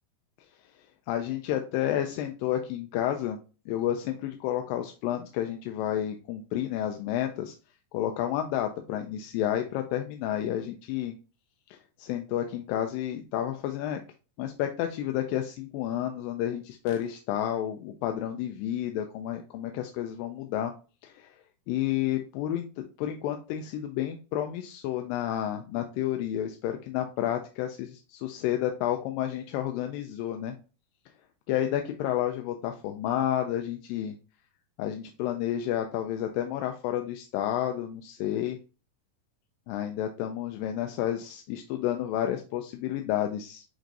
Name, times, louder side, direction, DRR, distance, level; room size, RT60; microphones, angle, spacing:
voice 1, 1.1-3.4 3.7-7.5 7.9-11.2 11.7-14.0 14.4-20.7 21.0-21.3 21.7-30.6 31.5-34.1 34.8-38.6 39.7-43.7, left 11 dB, 90° left, 5 dB, 2.3 m, -30 dB
7.5 x 2.5 x 2.7 m, 0.34 s
omnidirectional pair, 3.9 m